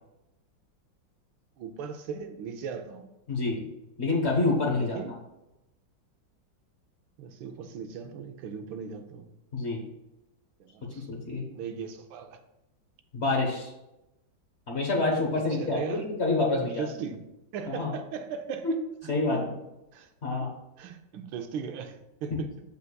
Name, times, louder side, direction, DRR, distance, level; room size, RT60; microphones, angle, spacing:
voice 1, 1.6-3.1 4.7-5.1 7.2-9.3 10.6-11.1 11.5-12.4 15.3-16.1 16.5-17.2 17.5-18.7 19.3-19.4 19.9-20.1 20.8-22.5, right 6 dB, 90° right, 1.4 m, -38 dB
voice 2, 3.3-3.6 4.0-5.0 9.5-9.8 11.1-11.5 13.1-13.7 14.7-16.9 17.7-17.9 18.6-18.7 19.1-19.4 20.2-20.5, left 3 dB, 45° left, 0.9 m, -27 dB
6.9 x 6.4 x 2.3 m
omnidirectional pair, 2.1 m